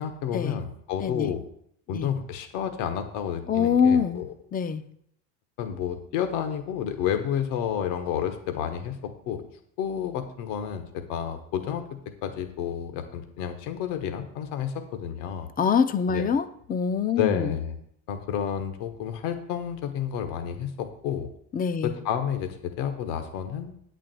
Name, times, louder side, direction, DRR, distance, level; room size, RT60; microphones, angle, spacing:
voice 1, 0.0-1.4 1.9-4.3 5.6-9.4 9.8-15.5 16.1-16.2 17.2-17.8 18.1-21.3 21.8-23.8, left 8 dB, 75° left, 7 dB, 1.3 m, -30 dB
voice 2, 1.0-1.3 1.9-2.1 3.5-4.2 4.5-4.8 15.6-17.6 21.5-21.9, left 6 dB, 20° left, 12 dB, 0.5 m, -24 dB
8.7 x 5.0 x 7.6 m, 0.70 s
supercardioid pair, 120°, 47 cm